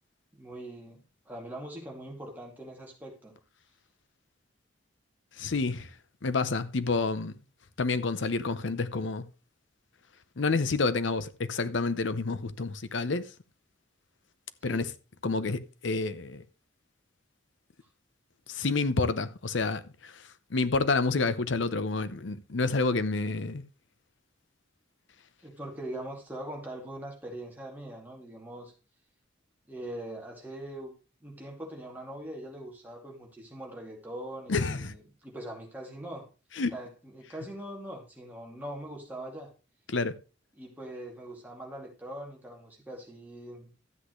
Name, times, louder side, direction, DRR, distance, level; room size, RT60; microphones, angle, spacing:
voice 1, 0.3-3.3 14.6-14.9 25.4-28.7 29.7-30.9 31.2-36.3 36.7-39.5 40.5-43.7, right 1 dB, 10° right, 2.4 m, -42 dB
voice 2, 5.4-5.9 6.2-7.3 7.8-9.3 10.4-13.2 14.6-14.9 15.2-16.4 18.5-20.1 20.5-23.6 34.5-34.9 36.6-36.7 39.9-40.1, left 3 dB, 80° left, 0.7 m, -29 dB
12.5 x 8.2 x 3.1 m
head